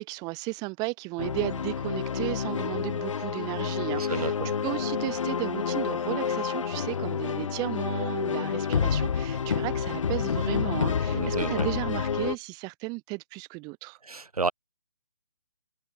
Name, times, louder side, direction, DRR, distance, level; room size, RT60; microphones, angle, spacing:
voice 1, 0.0-4.3 4.6-14.0, right 27 dB, 20° right, 4.6 m, -34 dB
sound 1, 1.2-12.3, left 6 dB, 55° left, 1.0 m, -29 dB
voice 2, 3.9-4.5 11.1-11.7 14.0-14.5, right 4 dB, 75° right, 5.6 m, -31 dB
figure-of-eight pair, 145°, 19 cm